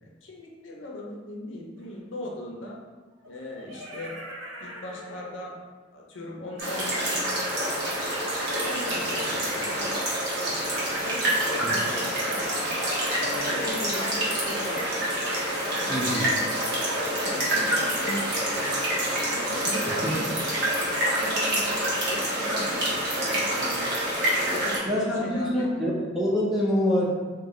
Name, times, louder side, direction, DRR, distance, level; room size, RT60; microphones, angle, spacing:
voice 1, 0.0-2.8 3.3-4.2 4.6-5.6 5.9-7.2 8.6-10.0 10.4-10.7 11.0-12.7 13.2-15.1 15.8-16.0 17.2-18.8 19.4-20.6 21.2-23.9 24.3-25.8, left 1 dB, 75° left, -2 dB, 0.6 m, -38 dB
sound 1, 1.8-1.9 3.2-5.6 6.9-10.3 11.5-14.6 15.8-20.0, equal, 80° right, 0.5 m, -41 dB
sound 2, 6.6-24.8, right 1 dB, 55° right, 1.0 m, -27 dB
voice 2, 15.9-16.3 20.0-20.1 24.9-27.1, left 1 dB, ahead, -5 dB, 0.6 m, -25 dB
3.1 x 2.3 x 3.7 m, 1.3 s
head